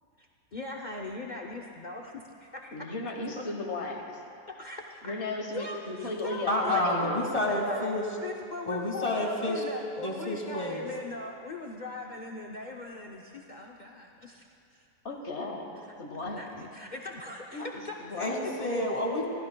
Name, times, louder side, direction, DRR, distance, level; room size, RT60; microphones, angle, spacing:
voice 1, 0.2-2.9 3.4-3.5 4.5-5.1 5.5-6.5 7.4-7.9 8.1-18.3, left 2 dB, 75° left, 0 dB, 0.4 m, -41 dB
voice 2, 2.7-4.2 5.0-7.2 15.0-16.4 17.5-17.7 18.0-18.4, left 3 dB, 45° left, 2 dB, 1.5 m, -35 dB
voice 3, 6.5-8.0 8.7-9.6 10.0-10.8 18.2-19.3, left 1 dB, 20° left, -1 dB, 1.5 m, -29 dB
23.0 x 15.0 x 2.3 m, 2.6 s
omnidirectional pair, 1.8 m